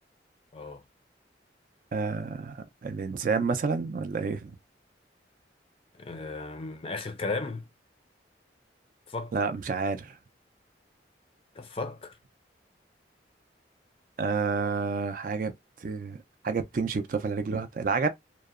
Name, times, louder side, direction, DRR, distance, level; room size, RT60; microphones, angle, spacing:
voice 1, 0.5-0.8 5.9-7.7 9.1-9.3 11.6-12.1, left 3 dB, 30° left, 0.4 m, -35 dB
voice 2, 1.9-4.5 9.3-10.2 14.2-15.5 15.8-16.2 16.4-18.1, right 4 dB, 45° right, 0.4 m, -29 dB
2.7 x 2.0 x 2.4 m
head